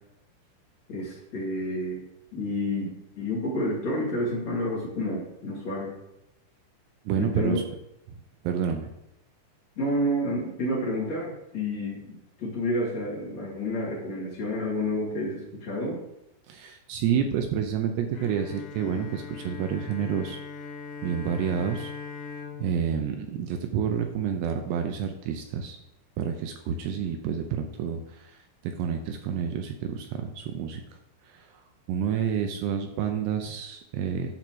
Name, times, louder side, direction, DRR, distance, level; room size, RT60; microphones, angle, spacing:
voice 1, 0.9-2.0 2.3-2.9 3.1-5.9 7.1-7.6 9.8-16.0, left 1 dB, 40° left, -6 dB, 3.3 m, -29 dB
voice 2, 7.1-7.6 8.4-8.9 16.5-20.4 21.0-21.9 22.6-25.8 26.2-30.8 31.2-31.6 31.9-34.4, right 8 dB, 80° right, 5 dB, 2.7 m, -29 dB
Bowed string instrument, 18.2-24.3, left 5 dB, 75° left, 3.3 m, -41 dB
11.0 x 4.8 x 6.2 m, 0.84 s
omnidirectional pair, 5.3 m